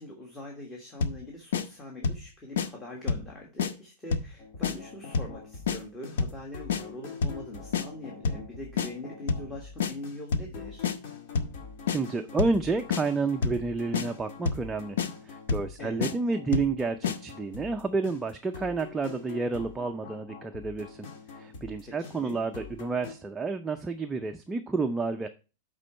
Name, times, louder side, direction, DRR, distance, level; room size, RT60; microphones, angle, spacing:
voice 1, 0.0-10.9 15.8-16.1 21.8-22.4, left 1 dB, 15° left, -1 dB, 1.4 m, -42 dB
sound 1, 1.0-1.2 1.5-1.7 2.0-2.3 2.6-2.7 3.1-3.3 3.6-3.7 4.1-4.3 4.6-4.8 5.1-5.4 5.7-5.8 6.2-6.4 6.7-6.8 7.2-7.4 7.7-7.9 8.2-8.5 8.8-8.9 9.3-9.5 9.8-9.9 10.3-10.5 10.8-11.0 11.4-11.6 11.9-12.0 12.4-12.6 12.9-13.0 13.4-13.6 13.9-14.1 14.5-14.7 15.0-15.1 15.5-15.7 16.0-16.1 16.5-16.7 17.0-17.2, left 5 dB, 90° left, 0.7 m, -27 dB
sound 2, 4.4-23.1, left 4 dB, 50° left, 1.8 m, -45 dB
voice 2, 11.9-15.0 15.3-21.1 21.3-25.3, right 4 dB, 10° right, 5 dB, 0.4 m, -30 dB
10.5 x 3.8 x 4.4 m, 0.33 s
supercardioid pair, 155°, 0 cm